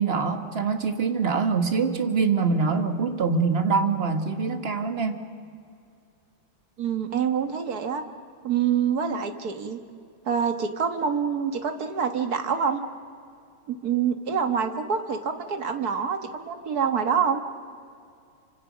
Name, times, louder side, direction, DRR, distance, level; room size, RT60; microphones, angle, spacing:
voice 1, 0.0-5.2, right 5 dB, 30° right, 7 dB, 1.5 m, -24 dB
voice 2, 6.8-8.0 8.4-9.8 10.3-12.8 13.7-17.4, right 7 dB, 50° right, 7 dB, 1.8 m, -26 dB
27.5 x 26.0 x 6.2 m, 2.4 s
omnidirectional pair, 2.3 m